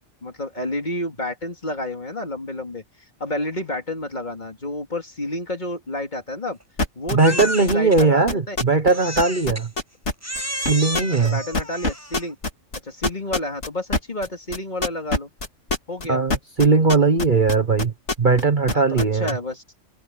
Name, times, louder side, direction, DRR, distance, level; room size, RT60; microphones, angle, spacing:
voice 1, 0.2-2.8 3.2-6.6 7.0-8.6 11.2-12.4 12.8-15.3 15.9-16.2 18.7-19.6, left 1 dB, 35° left, 2.7 m, -30 dB
sound 1, 6.8-8.9 9.2-10.4 10.7-11.3 11.5-18.4 18.7-19.3, left 2 dB, 60° left, 3.6 m, -24 dB
voice 2, 7.1-9.7 10.6-11.4 16.1-17.9 18.2-19.4, right 4 dB, 40° right, 1.3 m, -19 dB
Crying sobbing, 7.2-8.0 8.9-9.7 10.2-12.3, equal, 10° right, 6.8 m, -31 dB
omnidirectional pair, 1.3 m